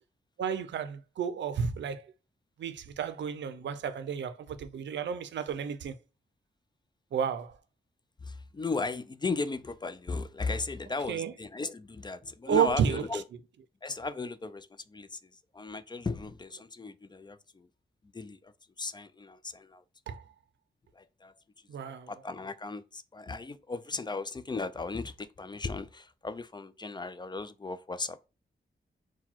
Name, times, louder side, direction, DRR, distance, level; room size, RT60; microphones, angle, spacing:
voice 1, 0.4-2.1 2.6-6.0 7.1-7.6 11.1-11.3 12.5-13.0 20.1-20.2 21.7-22.1, right 7 dB, 85° right, 0.5 m, -31 dB
voice 2, 8.2-13.2 13.8-17.7 18.0-18.5 18.8-19.8 20.9-21.3 21.8-28.3, left 3 dB, 25° left, 0.3 m, -36 dB
3.9 x 2.2 x 4.4 m
cardioid pair, 80°, 18 cm